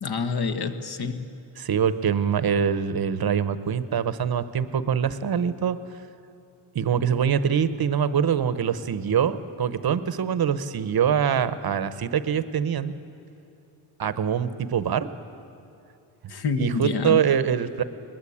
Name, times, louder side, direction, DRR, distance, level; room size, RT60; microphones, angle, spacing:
voice 1, 0.0-1.2 16.3-17.2, left 4 dB, 50° left, 9 dB, 1.4 m, -27 dB
voice 2, 1.6-5.8 6.7-12.9 14.0-15.1 16.6-17.8, right 8 dB, 45° right, 13 dB, 0.9 m, -24 dB
21.0 x 20.0 x 8.6 m, 2.7 s
wide cardioid pair, 150°, 50 cm